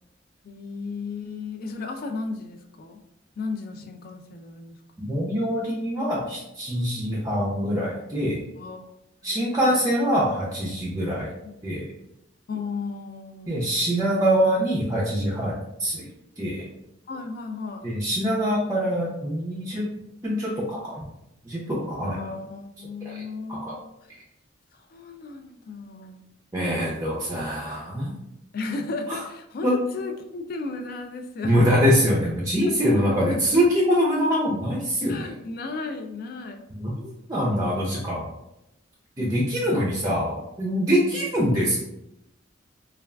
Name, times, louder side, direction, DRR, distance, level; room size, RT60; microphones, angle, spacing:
voice 1, 0.4-3.0 3.4-4.8 8.6-8.8 9.2-9.9 11.4-11.5 12.5-14.1 17.1-17.9 22.0-24.1 24.7-26.3 28.5-29.7 29.9-31.8 32.9-33.6 35.1-36.6 37.5-37.9 39.2-39.4 39.7-39.8, left 3 dB, 50° left, 6 dB, 0.3 m, -35 dB
voice 2, 5.0-8.4 9.2-11.3 11.6-11.9 13.5-16.1 16.4-16.7 17.8-19.9 20.2-21.0 21.4-22.3 23.0-23.2 23.5-23.8 26.5-28.1 29.6-29.7 31.4-35.3 36.7-38.3 39.2-41.8, equal, 15° right, -4 dB, 0.4 m, -24 dB
3.3 x 2.3 x 2.3 m, 0.85 s
head